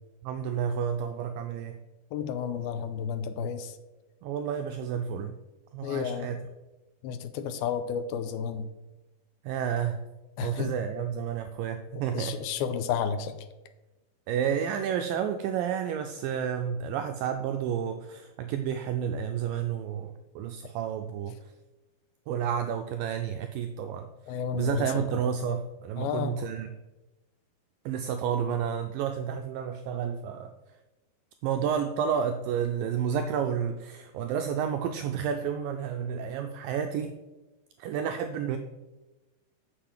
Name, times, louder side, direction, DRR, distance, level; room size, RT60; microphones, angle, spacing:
voice 1, 0.2-1.8 4.2-5.3 5.7-6.4 9.4-10.0 10.4-12.4 14.3-21.4 22.3-24.1 24.5-26.7 27.9-30.5 31.4-37.1 37.8-38.6, right 8 dB, 90° right, 7 dB, 2.0 m, -30 dB
voice 2, 2.1-3.7 5.8-6.3 7.0-8.7 10.4-10.7 12.1-13.3 24.3-25.0 26.0-26.4, left 7 dB, 80° left, 10 dB, 2.4 m, -31 dB
7.2 x 6.9 x 7.3 m, 1.1 s
omnidirectional pair, 4.6 m